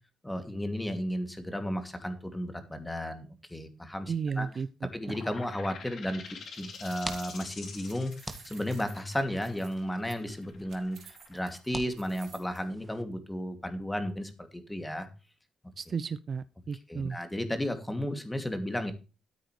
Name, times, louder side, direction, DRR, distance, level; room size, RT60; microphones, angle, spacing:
voice 1, 0.2-4.6 4.9-8.1 8.4-15.1 16.9-18.9, equal, 10° left, 7 dB, 2.6 m, -34 dB
voice 2, 4.1-4.7 15.8-17.2, right 6 dB, 45° right, 15 dB, 0.5 m, -33 dB
sound 1, 5.0-12.4, left 5 dB, 55° left, 3.2 m, -47 dB
sound 2, 6.3-12.6, right 8 dB, 65° right, 3.8 m, -54 dB
sound 3, 6.7-13.0, right 1 dB, 10° right, 1.9 m, -46 dB
13.5 x 9.1 x 3.3 m, 0.32 s
cardioid pair, 90°, 0 cm